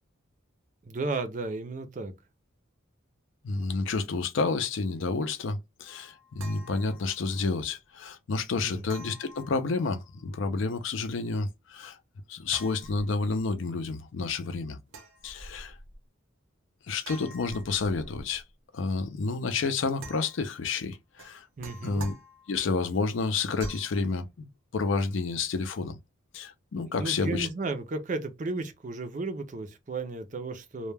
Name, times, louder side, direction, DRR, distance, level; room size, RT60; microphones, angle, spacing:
voice 1, 0.8-2.1 8.6-8.8 21.6-22.0 26.9-30.9, right 3 dB, 40° right, 0.4 m, -34 dB
voice 2, 3.4-12.0 12.3-14.8 15.2-15.8 16.9-18.4 18.7-21.4 21.8-22.1 22.5-26.0 26.3-27.5, left 4 dB, 70° left, 0.4 m, -30 dB
sound 1, 5.9-7.5 8.9-10.3 12.5-13.5 14.9-16.0 17.0-18.5 20.0-20.6 21.2-22.8 23.6-24.0, right 1 dB, 80° right, 0.7 m, -46 dB
2.2 x 2.1 x 3.1 m
head